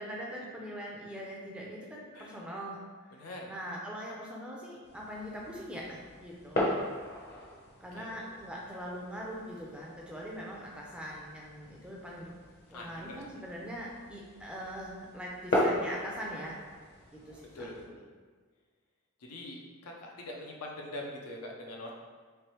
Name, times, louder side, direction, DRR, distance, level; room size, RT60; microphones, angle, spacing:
voice 1, 0.0-6.6 7.8-12.3 12.7-16.6 17.1-17.7, equal, 5° right, -3 dB, 0.4 m, -42 dB
voice 2, 3.1-3.5 7.5-7.6 8.0-8.4 12.7-13.2 17.5-18.0 19.2-21.9, left 1 dB, 90° left, -1 dB, 0.6 m, -43 dB
sound 1, 4.8-17.8, left 1 dB, 45° left, 0.7 m, -38 dB
3.3 x 3.0 x 3.0 m, 1.5 s
head